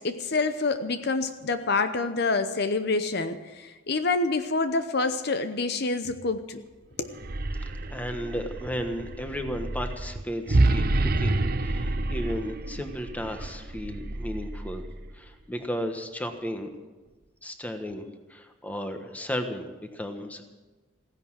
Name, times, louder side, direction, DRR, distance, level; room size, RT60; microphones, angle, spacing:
voice 1, 0.0-6.6 7.0-7.2, left 3 dB, 60° left, 9 dB, 0.8 m, -27 dB
sound 1, 7.1-15.2, right 2 dB, 50° right, 0.8 m, -28 dB
voice 2, 7.9-14.8 15.1-16.7 17.4-20.4, equal, 10° left, 6 dB, 1.3 m, -34 dB
16.0 x 10.5 x 7.4 m, 1.2 s
head